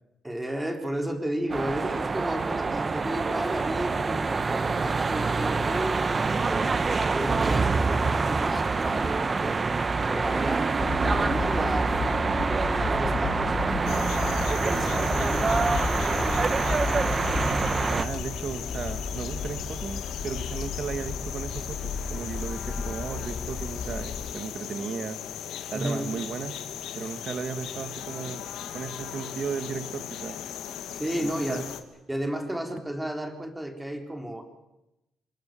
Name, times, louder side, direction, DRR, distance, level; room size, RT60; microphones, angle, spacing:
voice 1, 0.2-9.6 10.1-12.0 12.4-16.8 25.7-26.1 30.9-31.7 32.1-34.4, right 1 dB, 10° right, 4 dB, 3.7 m, -33 dB
sound 1, 1.5-18.0, right 4 dB, 30° right, 1.0 m, -26 dB
sound 2, 10.8-24.3, left 5 dB, 50° left, 2.4 m, -33 dB
sound 3, 13.9-31.8, left 9 dB, 85° left, 1.9 m, -38 dB
voice 2, 17.9-25.4 25.7-26.6 26.9-28.5 28.7-30.4 31.2-31.6, right 6 dB, 55° right, 11 dB, 1.7 m, -35 dB
25.5 x 20.5 x 7.6 m, 0.94 s
cardioid pair, 95°, 0 cm